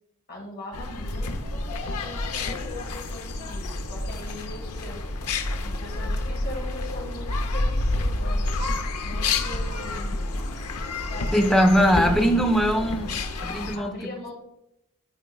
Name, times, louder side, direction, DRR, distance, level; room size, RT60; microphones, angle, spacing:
voice 1, 0.3-5.0 5.6-8.4 9.0-10.5 11.1-12.2 13.7-14.3, left 2 dB, 45° left, 2.4 m, -40 dB
sound 1, 0.7-13.8, left 2 dB, 85° left, 0.8 m, -29 dB
voice 2, 11.3-13.2 13.4-13.9, equal, ahead, 0.7 m, -20 dB
12.0 x 4.5 x 2.4 m
head